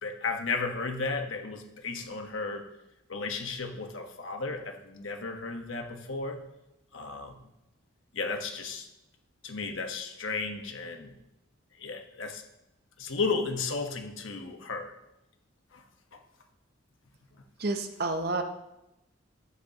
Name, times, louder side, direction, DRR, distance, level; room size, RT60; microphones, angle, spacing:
voice 1, 0.0-2.7 3.1-6.4 6.9-7.3 8.1-8.9 9.4-11.1 11.7-12.4 13.0-14.9 15.7-15.8 16.1-16.2, left 4 dB, 75° left, 4 dB, 1.2 m, -34 dB
voice 2, 17.6-18.4, right 2 dB, 50° right, 7 dB, 0.7 m, -29 dB
11.0 x 7.9 x 2.9 m, 0.90 s
head